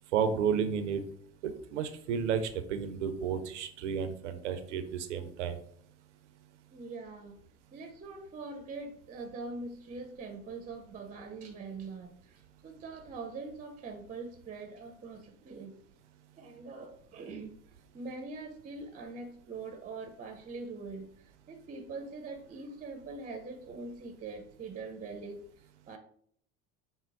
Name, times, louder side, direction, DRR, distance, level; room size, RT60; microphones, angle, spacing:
voice 1, 0.1-1.0 1.4-5.6, right 7 dB, 90° right, 9 dB, 0.5 m, -32 dB
voice 2, 6.7-7.4 7.7-15.8 16.4-17.6 17.9-26.0, right 3 dB, 25° right, 6 dB, 0.5 m, -43 dB
4.4 x 2.0 x 3.9 m, 0.62 s
hypercardioid pair, 80°, 35 cm